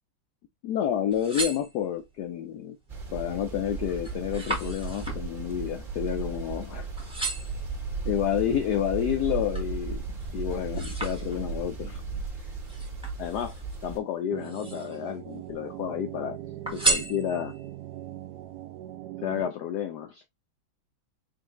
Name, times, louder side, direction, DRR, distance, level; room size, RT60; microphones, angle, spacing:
voice 1, 0.6-2.8 3.1-6.9 8.0-10.0 10.3-12.0 12.4-12.5 13.2-13.5 13.8-16.4 16.7-17.5 19.2-20.2, left 10 dB, 80° left, 0.9 m, -30 dB
sound 1, 0.9-2.2 2.8-3.2 3.6-6.7 7.0-7.7 8.3-9.8 10.2-11.7 12.6-13.8 14.3-15.1 15.4-16.2 16.6-17.7 18.2-18.3, right 2 dB, 5° right, 0.8 m, -34 dB
sound 2, 2.9-14.0, right 4 dB, 35° right, 0.9 m, -35 dB
sound 3, 14.3-19.5, right 13 dB, 75° right, 0.9 m, -40 dB
4.6 x 2.6 x 3.0 m
omnidirectional pair, 2.2 m